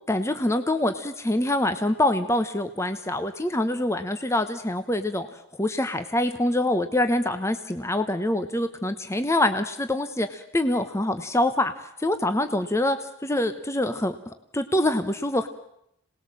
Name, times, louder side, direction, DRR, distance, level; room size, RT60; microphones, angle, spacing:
voice 1, 0.1-5.3 5.6-11.7 12.0-13.0 13.2-14.2 14.5-15.5, left 1 dB, 15° left, 9 dB, 0.9 m, -25 dB
27.0 x 19.5 x 7.6 m, 0.77 s
head